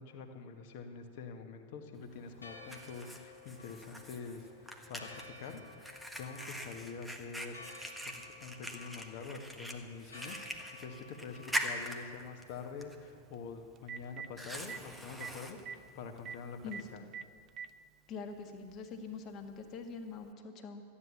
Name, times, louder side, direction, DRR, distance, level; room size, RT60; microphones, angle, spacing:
voice 1, 0.0-4.5 4.9-5.6 6.2-7.6 8.1-10.4 10.8-17.0, left 5 dB, 50° left, 4 dB, 1.5 m, -46 dB
Fire, 2.0-16.9, equal, 5° right, 1.3 m, -44 dB
Church bell, 2.1-12.3, left 2 dB, 80° left, 1.7 m, -55 dB
Telephone, 11.1-11.2 13.3-13.4 13.8-14.3 14.7-14.8 15.2-15.3 15.6-15.8 16.3-16.4 16.7-16.8 17.1-17.7 18.7-18.8 20.2-20.3, right 7 dB, 30° right, 0.5 m, -42 dB
voice 2, 18.1-20.8, left 4 dB, 30° left, 4 dB, 1.7 m, -44 dB
14.0 x 10.0 x 7.2 m, 2.1 s
figure-of-eight pair, 90°, 0 cm